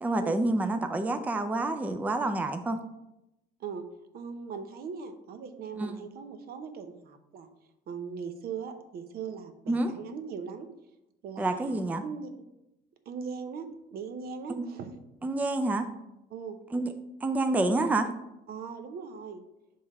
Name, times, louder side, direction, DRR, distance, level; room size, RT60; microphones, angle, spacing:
voice 1, 0.0-2.8 5.8-6.0 9.7-9.9 11.4-12.0 14.5-14.6 15.2-15.9 16.7-16.9 17.2-18.1, right 2 dB, 10° right, 7 dB, 0.4 m, -28 dB
voice 2, 4.1-7.5 7.9-10.7 11.2-11.7 12.0-12.3 13.1-15.0 16.3-16.6 18.5-19.4, right 6 dB, 65° right, 7 dB, 0.7 m, -39 dB
5.5 x 3.4 x 5.3 m, 0.89 s
cardioid pair, 110°, 17 cm